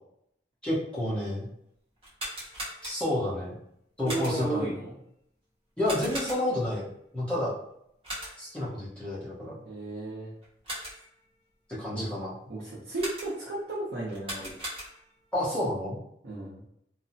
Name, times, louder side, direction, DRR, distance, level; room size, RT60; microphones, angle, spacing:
voice 1, 0.6-1.5 2.8-3.5 4.0-4.7 5.8-7.5 8.4-9.6 11.8-12.3 15.3-16.0, left 1 dB, 5° left, -9 dB, 0.9 m, -30 dB
sound 1, 2.0-3.3 4.0-4.6 5.8-6.7 8.0-8.6 10.4-11.2 12.9-13.6 14.1-15.2, right 1 dB, 30° right, 0.9 m, -39 dB
voice 2, 4.0-5.0 9.7-10.3 11.9-12.1 12.5-14.5 16.2-16.6, right 2 dB, 75° right, -8 dB, 0.7 m, -34 dB
3.1 x 2.0 x 2.7 m, 0.76 s
head